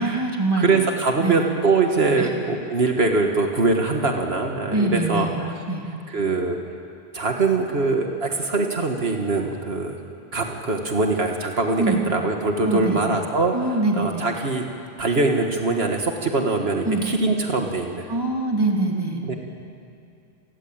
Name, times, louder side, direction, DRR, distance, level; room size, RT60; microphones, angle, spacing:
voice 1, 0.0-0.8 1.2-1.4 2.2-2.3 4.7-5.4 5.7-5.9 11.8-12.0 12.6-13.0 13.5-14.2 16.8-17.0 18.1-19.2, right 2 dB, 20° right, 0 dB, 3.2 m, -23 dB
voice 2, 0.6-5.3 6.1-6.6 7.1-10.0 10.3-14.6 15.0-18.1 19.2-19.4, right 3 dB, 75° right, 3 dB, 1.9 m, -23 dB
28.5 x 19.5 x 8.8 m, 2.5 s
omnidirectional pair, 1.0 m